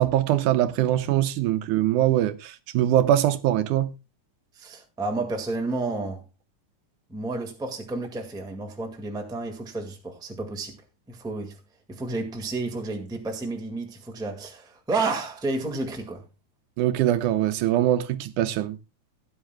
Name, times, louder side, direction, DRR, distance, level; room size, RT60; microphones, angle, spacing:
voice 1, 0.0-3.9 16.8-18.8, right 12 dB, 80° right, 2.1 m, -22 dB
voice 2, 4.5-6.2 7.1-10.8 11.1-11.6 11.9-16.2, right 3 dB, ahead, 1.0 m, -31 dB
17.5 x 9.9 x 2.3 m
omnidirectional pair, 3.7 m